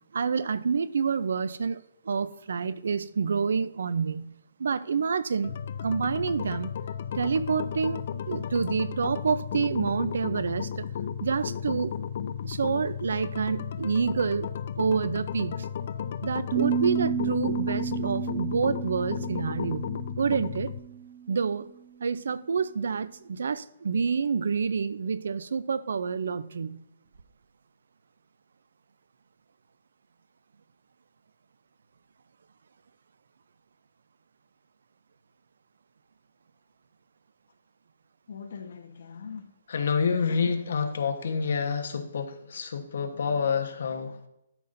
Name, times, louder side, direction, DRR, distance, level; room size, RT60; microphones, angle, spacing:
voice 1, 0.1-4.3 4.6-5.6 5.8-6.7 7.1-10.9 11.2-11.9 12.4-14.5 14.8-15.7 16.2-19.9 20.2-20.7 21.3-21.7 22.0-26.8, right 5 dB, 70° right, 16 dB, 0.5 m, -28 dB
sound 1, 5.4-20.8, left 8 dB, 45° left, 0.4 m, -34 dB
sound 2, 16.5-21.4, right 9 dB, 40° right, 1.5 m, -32 dB
voice 2, 38.3-44.3, left 5 dB, 60° left, 5 dB, 1.1 m, -29 dB
12.5 x 5.5 x 2.6 m, 0.85 s
hypercardioid pair, 170°, 0 cm